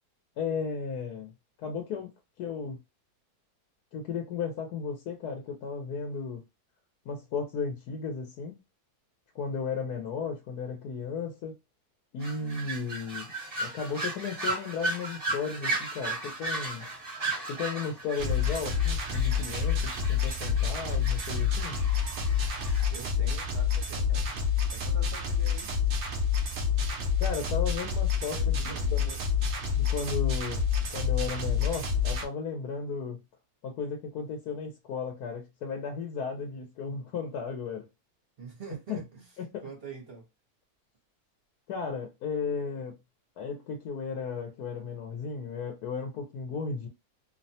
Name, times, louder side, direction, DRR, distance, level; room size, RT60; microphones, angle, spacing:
voice 1, 0.4-1.3 1.6-2.1 2.4-2.8 3.9-6.4 7.1-8.5 9.3-11.5 12.1-13.3 13.6-16.9 17.5-21.8 27.2-29.2 29.7-30.6 30.9-33.2 33.6-37.9 38.7-39.0 39.4-39.7 41.7-43.0 43.4-46.9, left 5 dB, 90° left, 1.2 m, -35 dB
sound 1, 12.2-22.9, right 2 dB, 25° right, 1.3 m, -36 dB
sound 2, 18.2-32.2, left 6 dB, 80° right, 0.5 m, -28 dB
voice 2, 22.9-24.3 24.7-25.7 28.3-28.9 38.4-39.3 39.6-40.3, right 4 dB, 45° right, 1.0 m, -44 dB
2.8 x 2.1 x 2.7 m
omnidirectional pair, 1.6 m